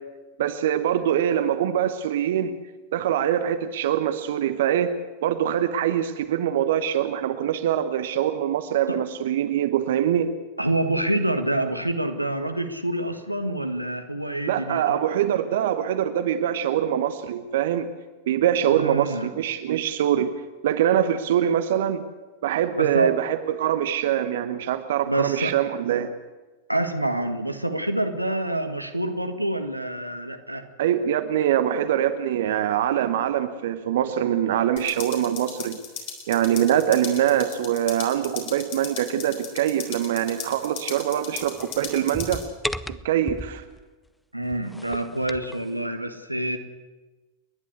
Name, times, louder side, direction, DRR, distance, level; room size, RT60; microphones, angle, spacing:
voice 1, 0.4-2.6 2.9-4.9 5.2-10.3 14.5-17.9 18.3-20.3 20.6-22.0 22.4-26.1 30.8-35.8 36.3-42.4 42.9-43.6, right 10 dB, 55° right, 10 dB, 1.1 m, -23 dB
voice 2, 10.6-15.0 18.7-19.3 22.7-23.1 25.1-25.5 26.7-30.7 44.3-46.6, right 1 dB, 90° right, 7 dB, 1.5 m, -27 dB
sound 1, 34.8-42.4, left 6 dB, 50° left, 4.1 m, -38 dB
sound 2, 41.4-43.8 44.4-45.6, left 1 dB, 5° left, 0.6 m, -35 dB
30.0 x 11.0 x 8.2 m, 1.2 s
figure-of-eight pair, 90°, 0 cm